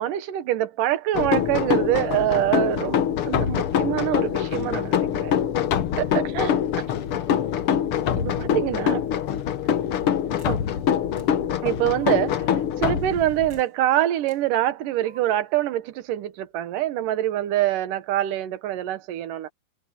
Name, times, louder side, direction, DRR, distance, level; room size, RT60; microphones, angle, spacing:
voice 1, 0.0-5.4 6.0-6.5 8.2-9.0 10.5-10.6 11.6-19.5, right 13 dB, 85° right, 2.8 m, -25 dB
sound 1, 1.1-13.6, left 9 dB, 60° left, 1.5 m, -24 dB
sound 2, 10.4-10.6 11.2-11.3 11.9-12.4 13.5-13.7 14.3-14.4 15.0-15.5, right 1 dB, 30° right, 5.2 m, -51 dB
omnidirectional pair, 3.7 m